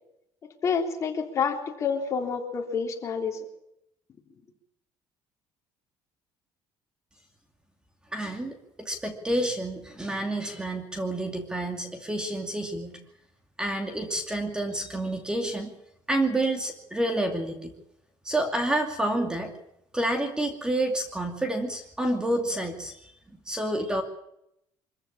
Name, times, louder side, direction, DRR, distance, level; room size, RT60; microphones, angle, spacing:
voice 1, 0.6-3.4, left 6 dB, 35° left, 3 dB, 3.6 m, -28 dB
voice 2, 8.1-13.0 13.6-15.7 16.1-17.7 18.2-19.5 19.9-23.1 23.5-24.0, right 1 dB, 10° right, 5 dB, 2.5 m, -29 dB
24.5 x 15.0 x 8.8 m, 0.80 s
cardioid pair, 150°, 8 cm